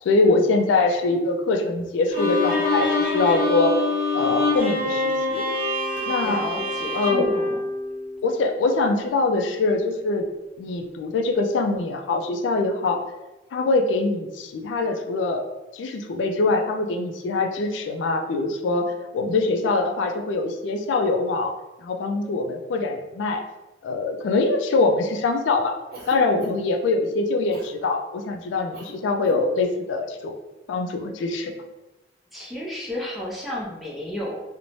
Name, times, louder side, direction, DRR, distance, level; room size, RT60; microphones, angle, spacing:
voice 1, 0.0-3.7 4.1-5.4 6.1-6.4 6.9-7.3 8.2-10.2 10.6-13.0 13.5-15.4 15.7-21.5 21.8-23.4 23.8-25.8 26.1-30.4 30.7-31.5, left 3 dB, 85° left, 4 dB, 0.3 m, -23 dB
Bowed string instrument, 2.1-8.4, left 3 dB, 45° left, 0.8 m, -25 dB
voice 2, 6.2-7.6 32.3-34.4, left 1 dB, ahead, -5 dB, 0.5 m, -32 dB
Cough, 25.9-26.8 27.5-27.7 28.7-29.0 29.2-29.5, right 1 dB, 55° right, 0.6 m, -40 dB
2.6 x 2.0 x 3.0 m, 1.0 s
head